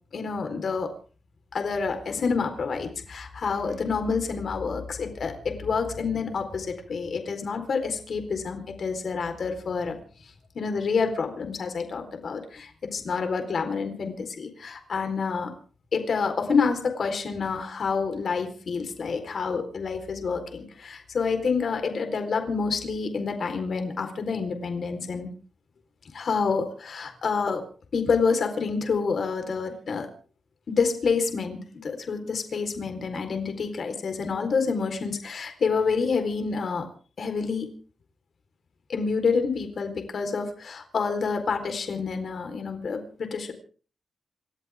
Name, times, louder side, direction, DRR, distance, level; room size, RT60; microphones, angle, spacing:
voice 1, 0.1-0.9 1.5-10.0 10.5-15.5 15.9-25.3 26.1-27.6 27.9-30.1 30.7-36.9 37.2-37.7 38.9-43.5, left 5 dB, 55° left, 6 dB, 4.1 m, -28 dB
28.5 x 13.5 x 3.6 m, 0.40 s
wide cardioid pair, 155°, 0 cm